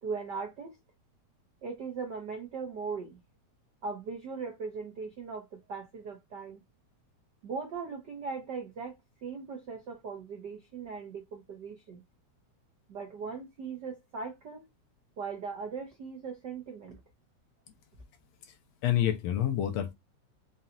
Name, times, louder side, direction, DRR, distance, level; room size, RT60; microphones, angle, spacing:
voice 1, 0.0-0.8 1.6-3.2 3.8-6.6 7.4-8.9 9.2-12.0 12.9-14.7 15.2-17.0, right 5 dB, 80° right, 0.9 m, -39 dB
voice 2, 18.8-19.9, left 11 dB, 75° left, 1.7 m, -28 dB
5.6 x 2.9 x 2.4 m
omnidirectional pair, 3.5 m